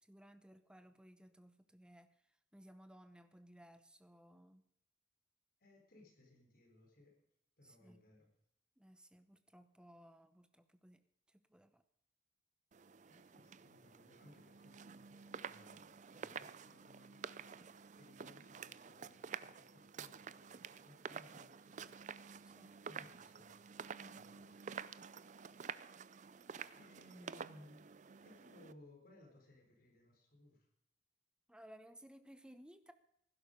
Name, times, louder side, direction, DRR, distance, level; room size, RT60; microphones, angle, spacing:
voice 1, 0.0-2.2 2.5-4.6 7.6-8.0 8.8-11.8 22.4-22.8 23.9-24.2 26.6-26.8 31.5-32.9, equal, 5° right, 10 dB, 0.8 m, -60 dB
voice 2, 5.6-7.1 7.6-8.3 13.1-21.9 22.9-23.6 24.1-24.8 26.7-27.9 28.2-30.7, left 1 dB, 50° left, 1 dB, 4.2 m, -63 dB
sound 1, 12.7-28.7, right 6 dB, 40° right, 0.4 m, -50 dB
15.5 x 12.0 x 5.2 m, 0.75 s
head